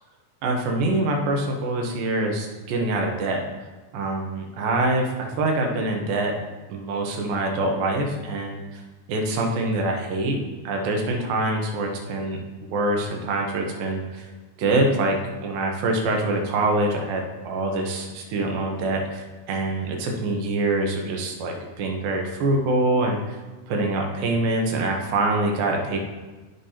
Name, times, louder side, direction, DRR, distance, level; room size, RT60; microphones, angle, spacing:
voice 1, 0.4-3.5 3.9-6.3 6.7-8.8 9.1-12.4 12.7-14.3 14.6-23.4 23.7-26.0, right 2 dB, 90° right, 1 dB, 2.9 m, -25 dB
14.0 x 5.5 x 2.9 m, 1.2 s
omnidirectional pair, 4.0 m